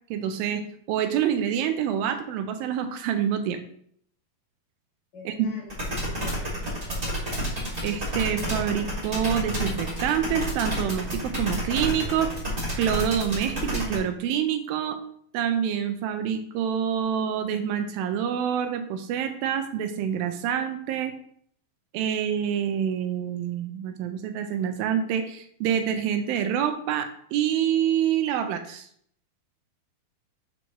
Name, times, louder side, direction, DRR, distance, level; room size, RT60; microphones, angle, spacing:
voice 1, 0.1-3.6 5.3-5.5 7.8-12.3 12.8-15.0 15.3-21.1 21.9-28.9, right 9 dB, 80° right, 7 dB, 2.3 m, -27 dB
voice 2, 5.1-5.7 6.0-7.4, left 3 dB, 40° left, -3 dB, 1.7 m, -45 dB
sound 1, 5.7-14.0, right 1 dB, 20° right, 1.2 m, -29 dB
7.0 x 6.2 x 3.0 m, 0.64 s
omnidirectional pair, 4.5 m